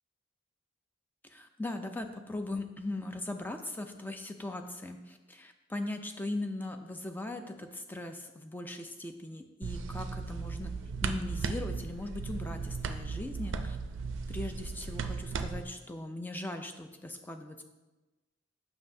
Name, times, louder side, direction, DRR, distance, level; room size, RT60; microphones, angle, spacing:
voice 1, 1.2-10.8 11.0-13.8 14.3-17.6, left 2 dB, 10° left, 6 dB, 0.4 m, -39 dB
sound 1, 9.6-15.6, right 4 dB, 70° right, 0.4 m, -36 dB
7.4 x 5.8 x 2.7 m, 1.1 s
head